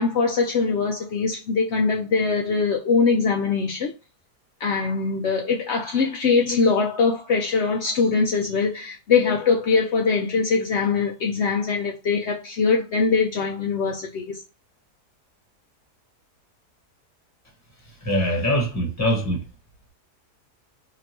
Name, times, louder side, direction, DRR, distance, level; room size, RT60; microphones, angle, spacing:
voice 1, 0.0-3.9 4.6-14.4, left 4 dB, 75° left, 0.6 m, -22 dB
voice 2, 18.0-19.4, equal, 10° left, 1.1 m, -23 dB
3.9 x 2.8 x 2.9 m
omnidirectional pair, 1.8 m